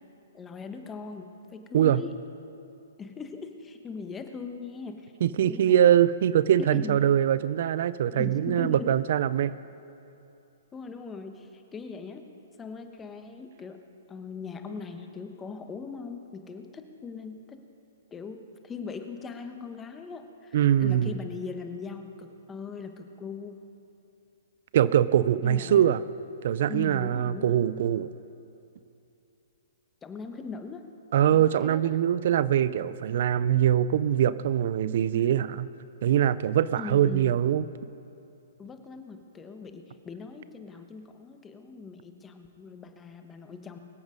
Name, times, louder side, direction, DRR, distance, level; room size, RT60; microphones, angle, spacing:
voice 1, 0.3-2.1 3.0-5.1 5.4-5.8 6.6-7.1 8.1-9.0 10.7-12.3 12.6-13.8 14.1-17.6 18.1-23.5 25.4-25.9 26.7-27.6 30.0-30.9 31.3-32.0 36.8-37.4 38.6-43.8, left 4 dB, 15° left, 6 dB, 1.2 m, -40 dB
voice 2, 5.2-9.6 20.5-21.1 24.7-26.0 26.4-28.1 31.1-35.7 36.0-37.6, right 10 dB, 60° right, 16 dB, 0.4 m, -23 dB
23.5 x 8.0 x 5.2 m, 2.8 s
hypercardioid pair, 135°, 0 cm